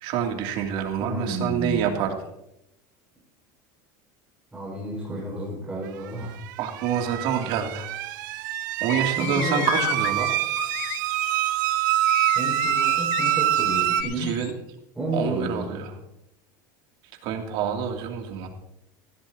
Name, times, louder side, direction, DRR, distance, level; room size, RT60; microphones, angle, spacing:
voice 1, 0.0-2.1 6.6-7.9 8.8-10.3 14.0-14.5 15.1-15.9 17.2-18.5, right 8 dB, 60° right, 2 dB, 2.8 m, -27 dB
voice 2, 1.0-1.9 4.5-6.4 9.1-9.8 12.3-14.4 14.9-15.7, right 1 dB, 10° right, -5 dB, 5.3 m, -32 dB
sound 1, 6.4-14.0, right 13 dB, 80° right, 1.0 m, -25 dB
sound 2, 8.9-14.5, left 17 dB, 75° left, 0.6 m, -33 dB
16.0 x 15.5 x 2.9 m, 0.83 s
supercardioid pair, 115°, 10 cm